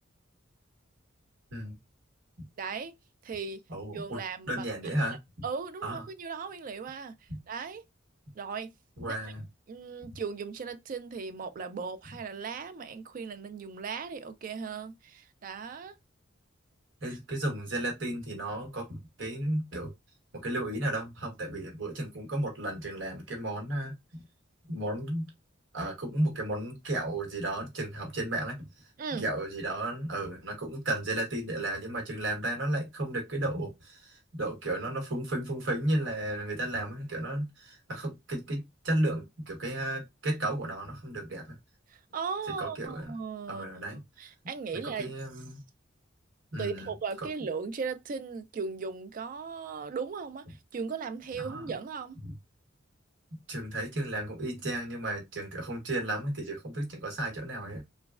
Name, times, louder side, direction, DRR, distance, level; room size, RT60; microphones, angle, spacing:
voice 1, 2.6-2.9 3.2-3.6 3.9-4.7 5.4-7.8 8.3-8.7 9.0-9.2 9.7-16.0 29.0-29.3 41.9-45.1 46.6-52.2, right 5 dB, 45° right, 0.3 m, -37 dB
voice 2, 3.7-4.2 4.5-5.2 5.8-6.0 7.3-7.4 9.0-9.4 17.0-19.9 20.3-24.2 24.7-25.3 25.7-28.7 29.1-41.5 42.6-43.1 43.5-44.0 44.8-45.6 46.5-46.9 51.4-51.6 52.2-52.3 53.3-57.8, right 1 dB, 70° right, 1.1 m, -33 dB
3.1 x 2.2 x 2.3 m
head